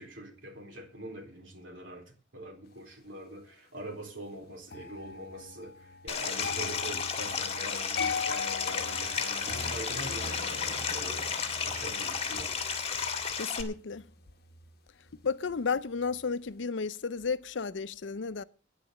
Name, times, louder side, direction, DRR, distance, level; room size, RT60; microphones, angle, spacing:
voice 1, 0.0-2.0 2.3-11.2 11.6-12.5, right 1 dB, 90° right, 3.9 m, -43 dB
sound 1, 4.7-15.7 15.9-16.3, left 5 dB, 55° left, 1.0 m, -41 dB
Stream, 6.1-13.6, left 6 dB, 35° left, 1.7 m, -33 dB
sound 2, 8.8-13.5, right 2 dB, 55° right, 2.7 m, -47 dB
voice 2, 13.3-14.0 15.2-18.4, left 5 dB, 75° left, 0.6 m, -33 dB
10.0 x 10.0 x 7.1 m
head